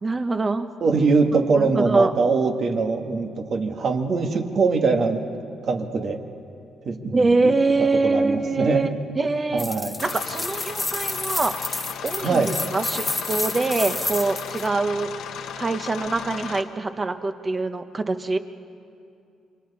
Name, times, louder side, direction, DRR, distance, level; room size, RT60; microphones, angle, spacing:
voice 1, 0.0-0.7 1.3-2.1 7.1-9.7 10.0-11.6 12.0-12.4 12.7-15.1 15.6-18.4, right 3 dB, 30° right, 8 dB, 1.1 m, -24 dB
voice 2, 0.8-5.3 5.6-6.2 6.8-7.5 8.0-8.9 9.5-10.0 12.2-12.5, right 4 dB, 55° right, 4 dB, 1.8 m, -22 dB
sound 1, 9.6-14.7, left 2 dB, 10° left, 1.2 m, -30 dB
sound 2, 10.0-16.6, left 8 dB, 85° left, 1.1 m, -35 dB
27.5 x 24.0 x 4.2 m, 2.6 s
cardioid pair, 90°, 0 cm